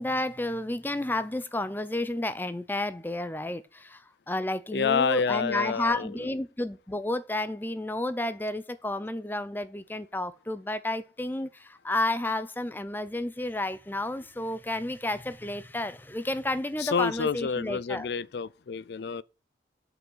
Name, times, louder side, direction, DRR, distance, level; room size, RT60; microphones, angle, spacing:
voice 1, 0.0-18.1, left 1 dB, 10° left, 0.5 m, -31 dB
voice 2, 4.7-6.1 16.8-19.2, left 6 dB, 65° left, 0.4 m, -28 dB
6.2 x 5.7 x 7.2 m
head